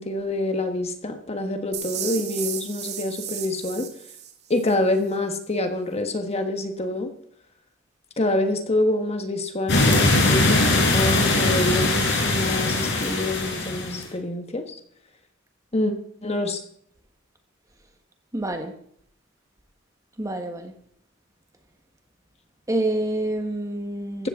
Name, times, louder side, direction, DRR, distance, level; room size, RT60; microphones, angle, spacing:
voice 1, 0.0-3.9 4.5-7.1 8.2-14.6 15.7-15.9 16.2-16.6, left 1 dB, 30° left, 6 dB, 1.4 m, -26 dB
sound 1, 1.7-4.7, right 10 dB, 55° right, 2.1 m, -34 dB
sound 2, 9.7-14.0, left 2 dB, 60° left, 4.8 m, -21 dB
voice 2, 18.3-18.7 20.2-20.7 22.7-24.3, right 1 dB, 15° right, 5 dB, 1.4 m, -27 dB
15.5 x 13.5 x 3.8 m, 0.64 s
head